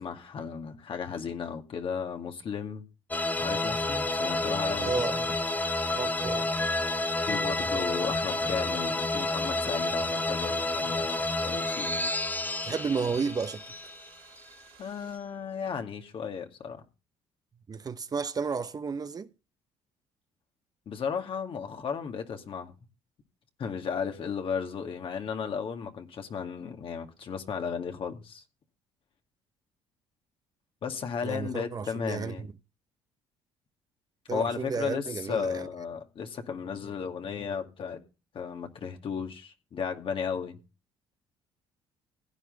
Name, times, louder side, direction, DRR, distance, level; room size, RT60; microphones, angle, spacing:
voice 1, 0.0-2.8 3.4-5.1 7.2-12.1 14.8-16.8 20.9-22.7 23.6-28.4 30.8-32.5 34.3-38.0 38.3-40.6, left 6 dB, 55° left, 2.3 m, -35 dB
sound 1, 3.1-14.5, left 2 dB, 15° left, 0.8 m, -30 dB
Stream, 4.4-15.2, right 10 dB, 80° right, 4.2 m, -57 dB
voice 2, 4.8-5.3 5.9-6.5 12.6-13.6 17.7-19.3 31.2-32.5 34.3-35.7, right 5 dB, 35° right, 0.9 m, -32 dB
16.5 x 9.6 x 3.9 m
supercardioid pair, 70°, 11 cm